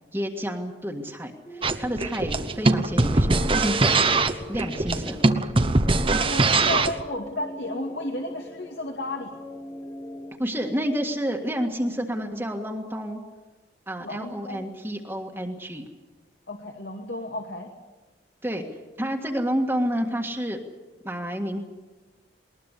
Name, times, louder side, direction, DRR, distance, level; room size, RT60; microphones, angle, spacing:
voice 1, 0.1-3.9 4.5-5.2 10.4-13.2 13.9-15.9 18.4-18.6 19.0-20.6 21.0-21.6, equal, 10° right, 2 dB, 1.7 m, -29 dB
sound 1, 1.4-10.4, left 1 dB, 15° left, 2.1 m, -41 dB
sound 2, 1.6-7.0, right 3 dB, 30° right, 1.0 m, -22 dB
voice 2, 6.3-9.3 14.0-14.6 16.5-17.7, left 1 dB, 70° left, 3 dB, 2.3 m, -33 dB
20.5 x 20.5 x 8.3 m, 1.2 s
head